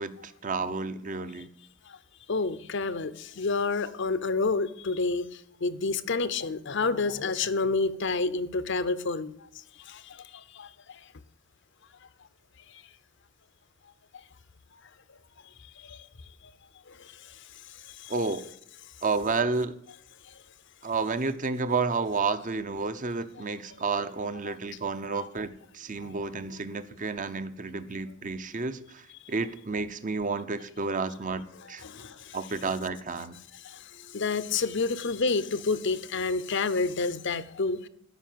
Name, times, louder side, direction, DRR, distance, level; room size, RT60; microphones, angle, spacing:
voice 1, 0.0-1.5 18.1-18.4 19.0-19.7 20.8-31.8 32.3-33.4, right 4 dB, 40° right, 11 dB, 0.9 m, -31 dB
voice 2, 2.3-5.3 5.6-9.4 9.9-10.2 10.5-10.7 15.8-16.0 23.4-23.5 24.5-24.6 25.0-25.2 26.0-26.1 31.8-32.2 33.6-33.8 34.1-37.9, left 3 dB, 65° left, 15 dB, 0.8 m, -29 dB
13.5 x 5.7 x 9.3 m, 0.69 s
head